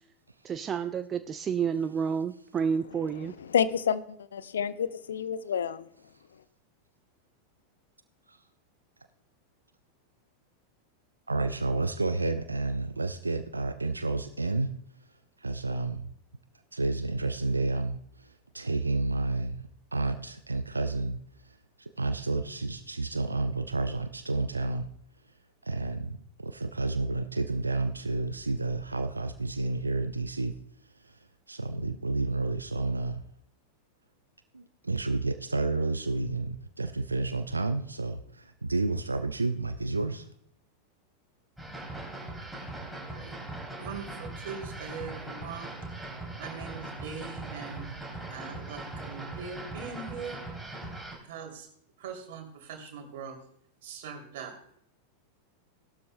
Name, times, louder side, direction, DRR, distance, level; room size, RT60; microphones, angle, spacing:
voice 1, 0.4-3.4, right 6 dB, 25° right, 11 dB, 0.5 m, -30 dB
voice 2, 3.2-5.9, left 7 dB, 65° left, 15 dB, 0.6 m, -29 dB
voice 3, 11.3-14.7 15.4-16.0 16.7-18.0 18.5-19.6 19.9-21.2 21.8-24.9 25.6-30.5 31.5-33.2 34.5-40.2, right 2 dB, 80° right, 10 dB, 0.6 m, -30 dB
sound 1, 41.6-51.2, right 2 dB, 5° right, 3.1 m, -40 dB
voice 4, 43.1-43.4 43.8-48.0 48.3-50.4 50.7-50.8 51.2-51.7 52.0-53.4 53.8-54.6, right 6 dB, 55° right, 4 dB, 2.8 m, -42 dB
18.0 x 12.5 x 2.2 m, 0.69 s
figure-of-eight pair, 90°, 0 cm